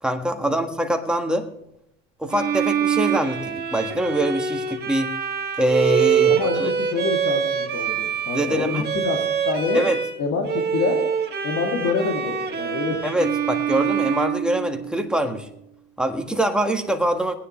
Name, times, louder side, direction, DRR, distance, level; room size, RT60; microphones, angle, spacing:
voice 1, 0.0-1.5 2.2-5.1 5.6-6.7 8.3-8.9 9.7-10.0 13.0-15.5 16.0-17.3, right 1 dB, 5° right, 4 dB, 1.7 m, -24 dB
Bowed string instrument, 2.3-10.2 10.4-15.2, right 7 dB, 35° right, 1.9 m, -25 dB
voice 2, 6.3-9.8 10.2-11.0 11.4-13.0, left 4 dB, 60° left, 1 dB, 2.6 m, -26 dB
19.5 x 9.7 x 3.2 m, 0.78 s
supercardioid pair, 105°, 29 cm